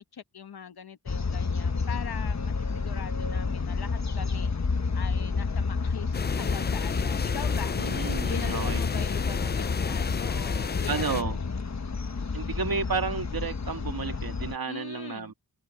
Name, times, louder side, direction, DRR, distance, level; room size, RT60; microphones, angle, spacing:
voice 1, 0.1-4.5 4.9-11.5 14.7-15.3, left 7 dB, 85° left, 1.2 m, -41 dB
sound 1, 1.1-14.6, left 4 dB, 45° left, 1.4 m, -30 dB
sound 2, 6.1-11.2, left 6 dB, 30° left, 0.4 m, -32 dB
voice 2, 7.8-8.8 10.9-11.4 12.3-15.3, right 5 dB, 70° right, 2.0 m, -32 dB
wide cardioid pair, 95°, 37 cm